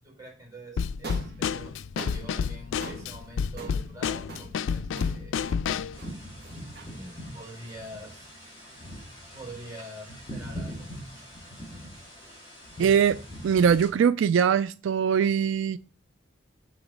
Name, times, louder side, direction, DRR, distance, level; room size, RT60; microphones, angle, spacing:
voice 1, 0.0-1.7 2.1-5.4 6.9-8.3 9.3-11.3, right 1 dB, 15° right, 3.4 m, -45 dB
Drum kit / Snare drum, 0.8-6.0, left 6 dB, 80° left, 0.3 m, -30 dB
sound 1, 0.9-9.2, right 3 dB, 55° right, 1.8 m, -45 dB
sound 2, 5.9-13.9, equal, 25° left, 3.0 m, -42 dB
voice 2, 12.8-13.2 13.4-15.8, right 7 dB, 80° right, 0.3 m, -22 dB
6.0 x 3.8 x 5.1 m
head